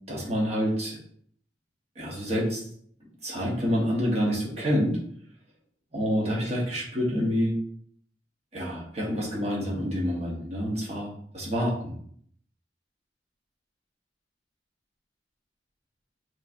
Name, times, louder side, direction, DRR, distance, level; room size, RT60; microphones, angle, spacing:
voice 1, 0.1-1.0 2.0-2.6 3.2-5.0 5.9-7.6 8.5-12.0, equal, 35° right, -3 dB, 1.2 m, -27 dB
5.3 x 3.1 x 2.6 m, 0.62 s
head